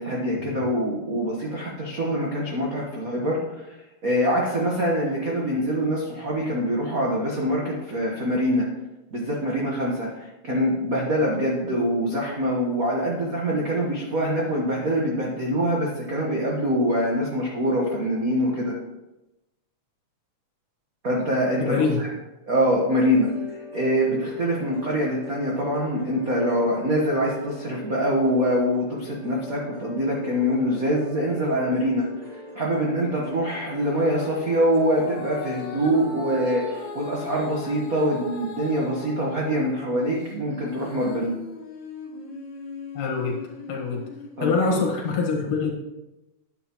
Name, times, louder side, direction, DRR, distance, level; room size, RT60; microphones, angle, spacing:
voice 1, 0.0-3.8 4.0-8.7 9.1-18.7 21.0-22.1 22.5-23.3 23.7-32.1 32.5-41.4 44.4-44.7, equal, 75° right, -3 dB, 0.7 m, -24 dB
voice 2, 21.6-22.0 42.9-43.4 43.7-44.0 44.4-45.7, left 4 dB, 80° left, 0 dB, 3.2 m, -24 dB
sound 1, 22.9-37.3, left 2 dB, 50° right, 1.7 m, -41 dB
Female singing, 33.8-39.7 40.2-44.5 45.1-45.2, left 3 dB, 65° left, 3.5 m, -39 dB
9.9 x 8.1 x 3.0 m, 0.99 s
omnidirectional pair, 3.6 m